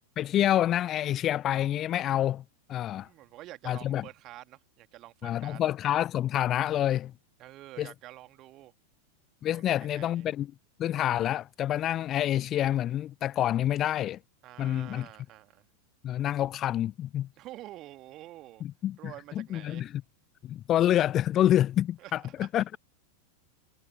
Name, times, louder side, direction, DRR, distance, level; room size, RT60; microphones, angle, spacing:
voice 1, 0.0-2.4 2.7-3.1 3.7-4.0 5.2-7.1 7.8-7.9 9.4-10.5 10.8-14.2 14.6-15.1 16.0-17.3 18.6-19.9 20.4-22.8, left 12 dB, 30° left, 0.5 m, -27 dB
voice 2, 2.9-5.6 7.4-8.7 9.5-10.3 14.4-15.7 17.4-18.6 19.0-19.9 22.0-22.6, right 16 dB, 35° right, 2.3 m, -48 dB
figure-of-eight pair, 90°, 0 cm